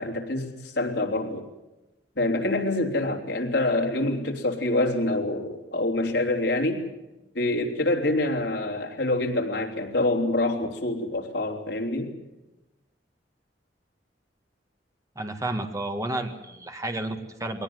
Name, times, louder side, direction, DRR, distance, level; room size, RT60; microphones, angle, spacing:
voice 1, 0.0-1.4 2.2-6.9 7.4-12.1, left 2 dB, 70° left, 1 dB, 3.4 m, -26 dB
voice 2, 15.2-17.6, right 1 dB, 20° right, 5 dB, 1.9 m, -31 dB
22.0 x 18.0 x 9.6 m, 1.0 s
head